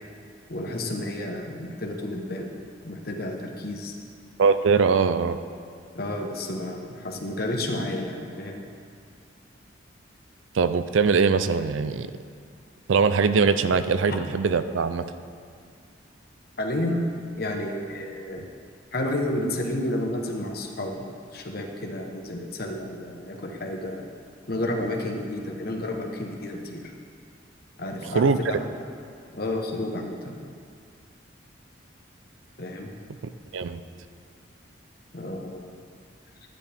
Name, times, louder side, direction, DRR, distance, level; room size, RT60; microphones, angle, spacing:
voice 1, 0.5-2.5 2.8-3.9 5.9-8.6 14.1-14.2 16.6-17.1 17.4-18.4 18.9-24.1 24.5-26.9 27.8-28.7 29.3-30.4 32.6-32.9 35.1-35.7, left 1 dB, 50° left, 1 dB, 1.1 m, -31 dB
voice 2, 4.4-5.4 10.5-12.1 12.9-15.1 28.1-28.4 33.5-33.8, right 5 dB, 85° right, 11 dB, 0.5 m, -21 dB
12.5 x 9.3 x 3.5 m, 2.2 s
head